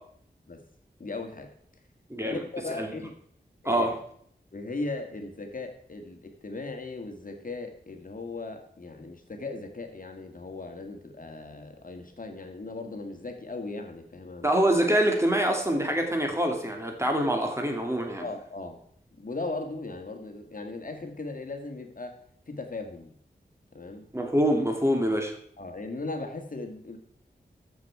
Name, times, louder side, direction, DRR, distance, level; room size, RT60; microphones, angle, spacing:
voice 1, 1.0-1.5 2.2-3.1 3.6-3.9 4.5-14.5 18.2-18.8 19.2-22.1 22.5-23.1 23.7-24.1 25.6-27.0, left 3 dB, 50° left, 4 dB, 1.7 m, -37 dB
voice 2, 14.4-18.2 24.1-25.4, right 1 dB, 15° right, 3 dB, 2.3 m, -25 dB
13.5 x 6.9 x 4.7 m, 0.64 s
wide cardioid pair, 55°, 18 cm